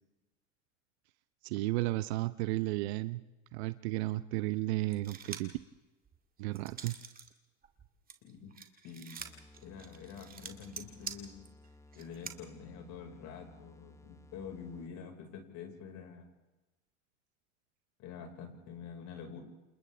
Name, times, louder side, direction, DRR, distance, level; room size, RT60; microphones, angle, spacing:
voice 1, 1.4-3.2 3.5-5.5 6.4-7.0, right 19 dB, 55° right, 14 dB, 0.8 m, -33 dB
sound 1, 4.9-5.6 6.1-7.3 7.6-12.4, right 7 dB, 20° right, 2.2 m, -46 dB
voice 2, 8.2-8.5 8.8-9.3 9.6-11.4 11.9-16.3 18.0-19.4, left 6 dB, 45° left, 4 dB, 5.1 m, -47 dB
sound 2, 9.2-15.1, left 2 dB, 10° left, 1.2 m, -58 dB
28.5 x 28.5 x 3.5 m, 1.1 s
hypercardioid pair, 100°, 38 cm